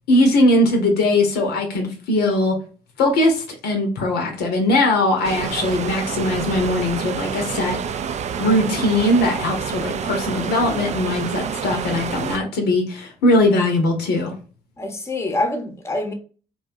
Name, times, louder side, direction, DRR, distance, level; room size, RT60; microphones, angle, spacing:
voice 1, 0.1-2.6 3.0-7.8 8.4-14.3, left 1 dB, 65° left, 0.7 m, -20 dB
sound 1, 5.2-12.4, right 7 dB, 40° right, 0.4 m, -28 dB
voice 2, 14.8-16.1, left 2 dB, 15° left, 0.8 m, -25 dB
2.7 x 2.3 x 2.5 m
hypercardioid pair, 50°, 18 cm